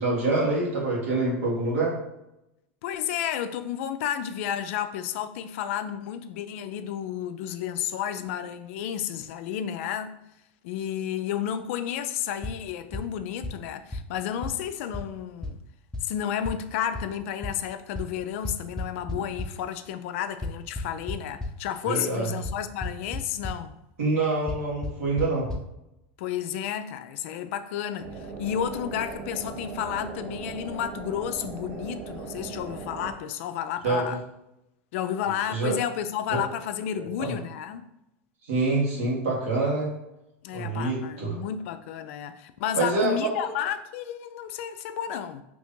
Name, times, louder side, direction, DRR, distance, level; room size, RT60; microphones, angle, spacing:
voice 1, 0.0-2.0 21.8-22.3 24.0-25.5 33.8-34.1 35.5-35.7 36.9-37.3 38.5-39.9 40.5-41.4 42.7-43.2, right 2 dB, 85° right, 1.4 m, -26 dB
voice 2, 2.8-10.2 10.6-15.6 16.0-23.8 26.2-28.1 28.4-34.2 34.9-37.9 40.4-45.4, left 10 dB, 70° left, 0.3 m, -31 dB
sound 1, 12.4-12.5 12.9-13.0 13.4-13.5 13.9-14.0 14.4-14.5 14.9-15.0 15.4-15.5 15.9-16.0 16.4-16.5 16.9-17.0 17.4-17.5 17.9-18.0 18.4-19.4 20.4-21.5 22.4-22.5 22.8-23.2 23.4-23.5 24.5-24.6 24.8-24.9 25.2-25.3 25.5-25.6, left 2 dB, 10° left, 0.5 m, -31 dB
sound 2, 28.0-33.1, right 4 dB, 70° right, 0.7 m, -38 dB
2.9 x 2.6 x 3.6 m
supercardioid pair, 110°, 7 cm